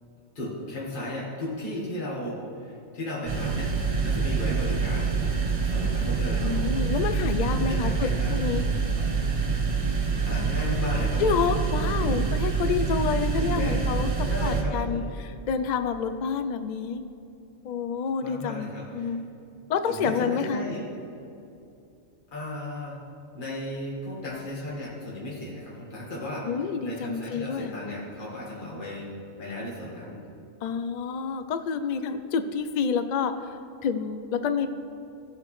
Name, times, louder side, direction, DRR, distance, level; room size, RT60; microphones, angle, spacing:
voice 1, 0.4-3.7 4.0-5.2 5.7-6.8 7.7-8.4 9.4-9.5 10.2-11.5 11.9-12.4 13.4-13.8 14.2-15.1 18.2-19.1 19.8-20.9 22.3-23.0 23.3-26.5 26.8-29.1 29.4-30.2, left 1 dB, 40° left, -6 dB, 1.8 m, -35 dB
sound 1, 3.3-14.6, right 5 dB, 35° right, 0.7 m, -26 dB
voice 2, 6.4-8.7 11.2-14.1 14.4-17.0 17.6-19.2 19.7-20.7 26.5-27.8 30.6-33.3 33.8-34.7, left 6 dB, 60° left, 9 dB, 0.4 m, -28 dB
15.5 x 6.7 x 3.2 m, 2.7 s
omnidirectional pair, 1.3 m